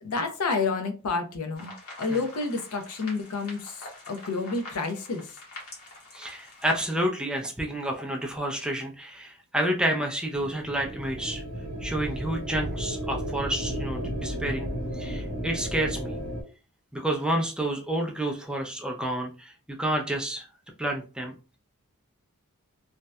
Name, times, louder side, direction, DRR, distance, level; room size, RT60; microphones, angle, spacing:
voice 1, 0.0-1.7 2.0-5.3, left 4 dB, 85° left, 5 dB, 0.6 m, -29 dB
sound 1, 1.6-6.8, left 2 dB, 70° left, 1.0 m, -44 dB
voice 2, 6.1-11.4 11.8-16.2 16.9-20.5 20.8-21.6, right 1 dB, 5° right, 1 dB, 0.3 m, -30 dB
sound 2, 10.3-16.4, equal, 65° right, 0.7 m, -33 dB
2.6 x 2.1 x 2.2 m, 0.34 s
head